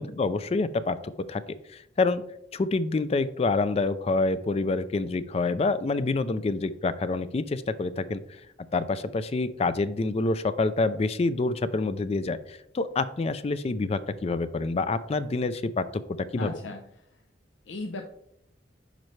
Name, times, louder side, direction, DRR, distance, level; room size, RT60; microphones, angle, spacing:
voice 1, 0.0-1.4 1.7-2.2 2.5-8.2 8.7-16.5, left 3 dB, 35° left, 13 dB, 0.4 m, -27 dB
voice 2, 16.4-16.9 17.7-18.0, left 2 dB, 90° left, 4 dB, 0.7 m, -36 dB
8.9 x 5.4 x 3.2 m, 0.76 s
head